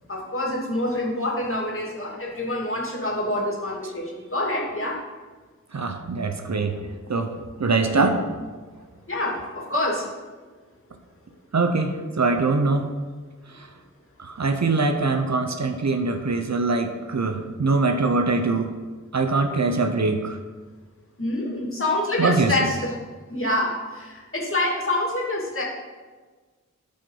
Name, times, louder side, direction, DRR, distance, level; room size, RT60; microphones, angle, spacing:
voice 1, 0.1-5.0 9.1-10.1 21.2-22.9 23.3-25.6, left 1 dB, 45° left, -3 dB, 2.5 m, -26 dB
voice 2, 5.7-6.8 7.1-8.4 11.5-12.9 13.5-13.7 14.2-18.7 19.1-20.4 22.2-22.7, right 3 dB, 60° right, 6 dB, 0.8 m, -23 dB
12.5 x 5.4 x 3.9 m, 1.4 s
wide cardioid pair, 60°, 31 cm